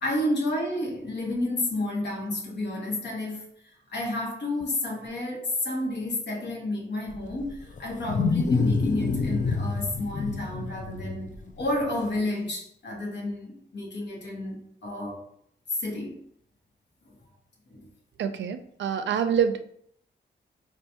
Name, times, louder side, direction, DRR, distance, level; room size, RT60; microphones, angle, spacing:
voice 1, 0.0-3.5 3.9-15.2 15.7-16.1 17.7-17.9, left 1 dB, 70° left, 1.1 m, -30 dB
Wild animals, 7.1-12.1, left 4 dB, 45° left, 0.4 m, -28 dB
voice 2, 18.2-19.6, right 8 dB, 80° right, 0.4 m, -26 dB
4.5 x 2.4 x 2.8 m
wide cardioid pair, 140°, 19 cm